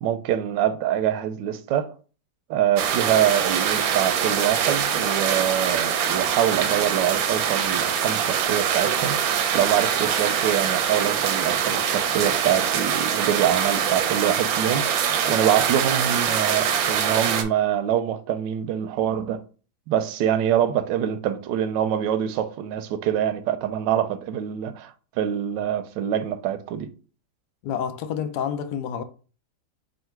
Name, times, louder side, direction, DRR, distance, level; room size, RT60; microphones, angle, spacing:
voice 1, 0.0-1.9 2.5-9.2 9.5-15.0 15.3-19.4 19.9-24.9 25.2-26.9, right 10 dB, 85° right, 1.2 m, -24 dB
sound 1, 2.8-17.4, right 8 dB, 70° right, 0.9 m, -24 dB
voice 2, 27.6-29.0, left 8 dB, 75° left, 1.1 m, -28 dB
3.7 x 2.5 x 4.5 m
omnidirectional pair, 1.9 m